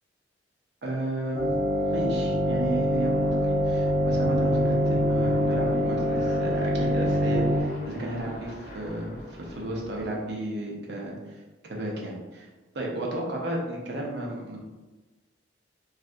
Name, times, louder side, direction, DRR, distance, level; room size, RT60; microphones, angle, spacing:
voice 1, 0.8-11.4 11.6-12.5 12.7-14.6, right 1 dB, 60° right, -2 dB, 0.7 m, -33 dB
sound 1, 1.3-7.6, equal, 10° right, 0.5 m, -24 dB
Aircraft, 2.9-10.2, equal, 45° left, 0.6 m, -40 dB
3.2 x 2.5 x 2.5 m, 1.2 s
head